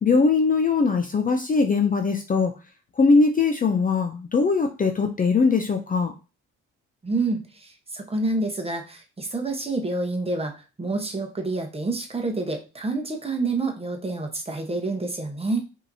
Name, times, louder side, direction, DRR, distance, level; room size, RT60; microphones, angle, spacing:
voice 1, 0.0-2.5 3.0-6.1, left 4 dB, 30° left, 5 dB, 0.5 m, -21 dB
voice 2, 7.0-15.6, right 2 dB, 20° right, 4 dB, 1.0 m, -28 dB
5.0 x 2.9 x 2.7 m, 0.32 s
cardioid pair, 90°, 30 cm